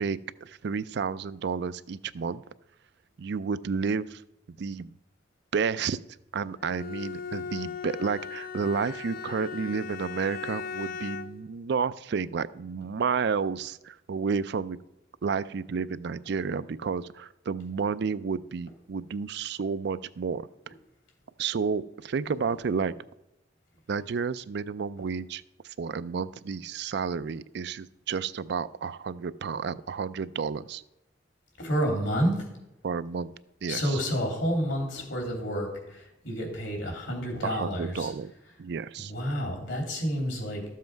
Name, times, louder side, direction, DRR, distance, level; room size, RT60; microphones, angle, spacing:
voice 1, 0.0-2.4 3.2-4.2 4.6-4.9 5.5-6.0 6.3-14.8 15.2-20.5 21.4-22.9 23.9-30.8 32.8-33.3 33.6-34.0 37.4-38.3 38.6-39.1, right 5 dB, 65° right, 15 dB, 0.4 m, -31 dB
Bowed string instrument, 6.6-11.5, left 6 dB, 50° left, 0.4 m, -38 dB
voice 2, 31.6-32.4 33.7-38.1 38.5-38.6 39.0-40.6, equal, 75° left, 2 dB, 3.1 m, -29 dB
13.0 x 7.6 x 4.6 m, 0.89 s
head